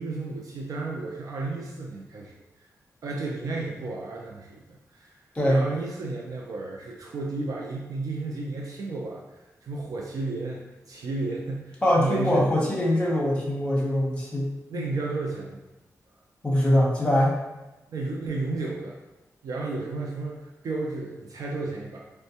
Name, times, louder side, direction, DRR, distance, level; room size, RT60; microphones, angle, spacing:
voice 1, 0.0-2.3 3.0-5.2 5.5-9.2 9.6-12.5 14.7-15.6 17.9-19.0 19.4-22.0, right 3 dB, 70° right, -2 dB, 0.4 m, -33 dB
voice 2, 5.3-5.6 11.8-14.5 14.7-14.8 16.4-17.3, left 1 dB, 15° left, -3 dB, 0.9 m, -23 dB
4.3 x 2.2 x 2.8 m, 1.0 s
wide cardioid pair, 125°, 6 cm